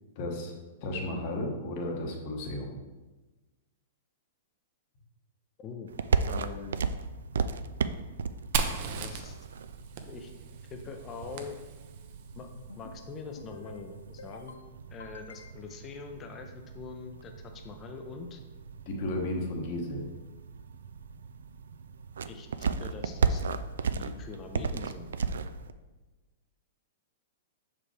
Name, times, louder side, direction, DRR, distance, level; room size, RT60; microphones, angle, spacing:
voice 1, 0.1-0.5 0.8-2.8 18.8-20.1, left 1 dB, 50° left, 1 dB, 1.3 m, -33 dB
voice 2, 5.6-5.9 6.2-6.8 8.9-9.5 10.1-10.3 10.7-11.6 12.3-12.5 12.7-14.6 14.9-18.4 22.3-23.4 23.9-25.1, left 5 dB, 30° left, 4 dB, 0.6 m, -43 dB
sound 1, 5.9-25.7, right 5 dB, 80° right, 0.3 m, -35 dB
Fire, 8.5-12.2, right 6 dB, 55° right, 0.7 m, -36 dB
sound 2, 12.6-13.0 13.4-13.8 14.2-14.6 15.0-15.8, left 5 dB, 90° left, 0.5 m, -49 dB
6.0 x 4.9 x 3.3 m, 1.2 s
hypercardioid pair, 120°, 0 cm